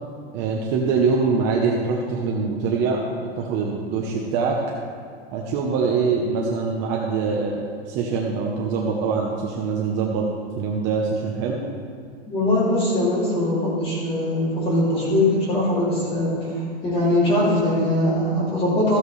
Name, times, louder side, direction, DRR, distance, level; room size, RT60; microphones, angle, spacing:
voice 1, 0.3-4.6 5.3-10.3 10.6-11.6, right 5 dB, 35° right, -1 dB, 0.9 m, -24 dB
voice 2, 12.3-16.5 16.8-19.0, left 1 dB, 20° left, -7 dB, 2.8 m, -21 dB
14.0 x 8.0 x 3.2 m, 2.1 s
supercardioid pair, 160°, 31 cm